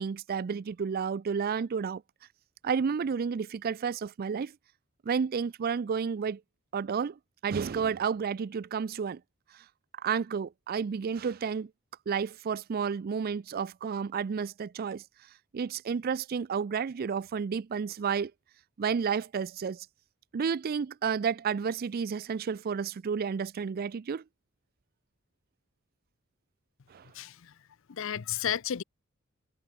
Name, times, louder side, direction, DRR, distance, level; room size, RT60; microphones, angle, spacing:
voice 1, 0.0-2.0 2.6-4.5 5.1-6.4 6.7-9.2 10.0-11.7 12.1-15.0 15.5-18.3 18.8-19.9 20.3-24.2 26.9-27.1, right 6 dB, 45° right, 0.4 m, -31 dB
voice 2, 27.1-27.5 27.9-28.8, left 9 dB, 65° left, 0.6 m, -32 dB
head